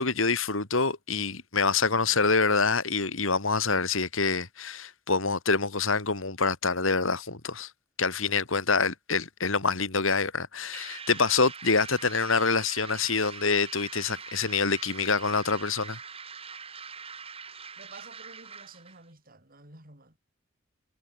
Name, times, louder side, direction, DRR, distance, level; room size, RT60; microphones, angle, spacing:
voice 1, 0.0-7.7 8.0-16.0, left 4 dB, 70° left, 2.7 m, -26 dB
voice 2, 1.9-2.3 17.8-20.2, right 3 dB, 45° right, 6.9 m, -51 dB
sound 1, 10.7-19.0, right 5 dB, 30° right, 2.0 m, -43 dB
head